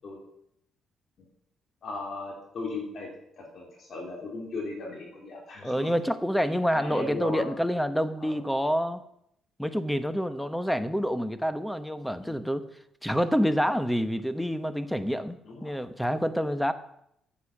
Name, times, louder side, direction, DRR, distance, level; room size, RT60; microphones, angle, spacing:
voice 1, 1.8-3.1 3.4-5.9 6.7-7.5 8.2-8.4 12.2-12.4 15.4-15.7, left 3 dB, 55° left, -1 dB, 3.3 m, -37 dB
voice 2, 5.6-9.0 9.6-12.7 13.0-16.7, equal, ahead, 12 dB, 1.0 m, -27 dB
9.9 x 8.4 x 7.2 m, 0.74 s
cardioid pair, 90°, 0 cm